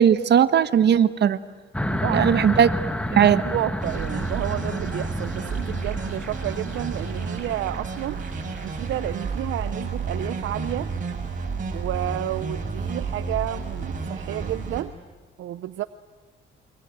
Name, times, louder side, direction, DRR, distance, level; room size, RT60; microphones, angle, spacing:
voice 1, 0.0-1.4 2.1-2.7 3.1-3.4, right 8 dB, 60° right, 12 dB, 1.2 m, -17 dB
sound 1, 1.7-9.2, left 1 dB, 5° left, 1.4 m, -31 dB
voice 2, 1.9-2.3 3.4-8.2 8.6-10.9 11.7-15.0 15.4-15.8, right 13 dB, 80° right, 12 dB, 0.7 m, -31 dB
sound 2, 3.8-14.8, right 4 dB, 40° right, 5.6 m, -31 dB
28.5 x 23.0 x 9.0 m, 1.4 s
cardioid pair, 90°, 20 cm